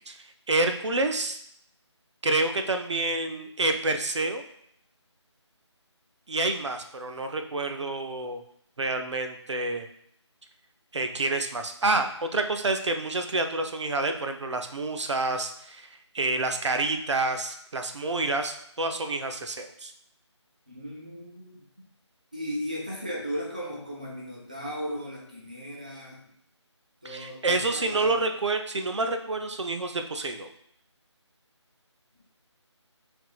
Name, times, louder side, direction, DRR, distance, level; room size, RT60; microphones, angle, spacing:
voice 1, 0.1-1.4 2.2-4.4 6.3-8.4 8.8-9.9 10.9-15.9 16.1-19.9 27.0-30.5, right 2 dB, 70° right, 6 dB, 0.6 m, -28 dB
voice 2, 20.7-21.6 22.3-26.3 27.0-28.2, equal, 15° right, -4 dB, 0.4 m, -36 dB
5.7 x 3.6 x 2.3 m, 0.69 s
figure-of-eight pair, 175°, 15 cm